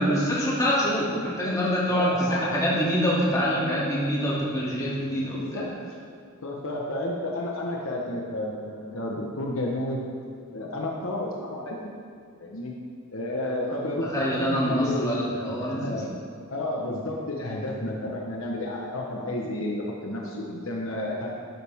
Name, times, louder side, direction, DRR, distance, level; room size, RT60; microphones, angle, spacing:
voice 1, 0.0-5.6 14.1-15.9, equal, 15° left, -7 dB, 2.7 m, -25 dB
voice 2, 1.9-2.6 3.4-4.2 5.3-5.7 6.4-10.0 10.5-11.9 12.4-12.7 13.1-14.1 14.3-15.1 15.6-16.0 16.5-21.3, left 1 dB, 60° left, -1 dB, 1.2 m, -31 dB
12.0 x 11.5 x 3.7 m, 2.2 s
head